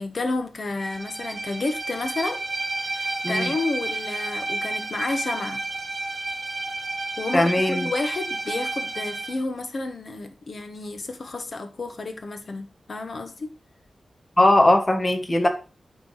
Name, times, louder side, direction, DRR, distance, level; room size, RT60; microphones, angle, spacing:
voice 1, 0.0-2.4 2.9-5.6 7.2-13.5 15.4-15.5, left 3 dB, 50° left, 0.9 m, -31 dB
Bowed string instrument, 0.8-9.4, right 2 dB, 45° right, 1.2 m, -31 dB
voice 2, 7.3-7.8 14.4-15.5, left 1 dB, 25° left, 1.2 m, -19 dB
9.2 x 3.2 x 5.4 m
wide cardioid pair, 155°, 0 cm